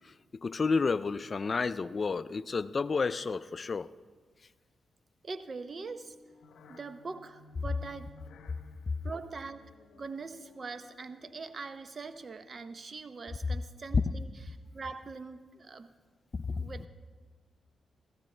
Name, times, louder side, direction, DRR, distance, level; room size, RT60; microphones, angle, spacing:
voice 1, 0.3-3.9 13.9-14.0 16.3-16.6, left 4 dB, 45° left, 16 dB, 0.4 m, -30 dB
voice 2, 5.2-6.2 6.7-8.1 9.0-9.6 10.0-14.3 14.7-15.9 16.6-16.9, right 4 dB, 50° right, 11 dB, 0.8 m, -42 dB
sound 1, 5.4-11.8, left 3 dB, 80° left, 0.7 m, -58 dB
17.5 x 15.0 x 3.3 m, 1.4 s
supercardioid pair, 50°, 0 cm